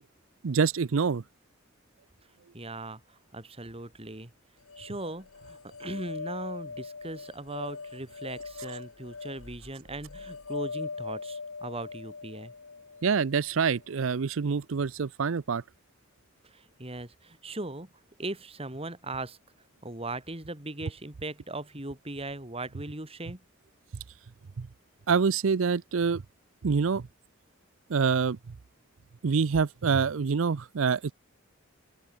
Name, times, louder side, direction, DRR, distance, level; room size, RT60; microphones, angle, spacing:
voice 1, 0.4-1.2 13.0-15.6 24.6-24.7 25.1-26.2 26.6-27.1 27.9-28.4 29.2-31.1, right 5 dB, 70° right, 0.5 m, -26 dB
voice 2, 2.5-4.3 4.8-12.5 16.4-17.9 18.2-19.4 19.8-23.4, right 2 dB, 30° right, 2.9 m, -39 dB
sound 1, 4.7-13.8, left 4 dB, 85° left, 1.4 m, -41 dB
open air
head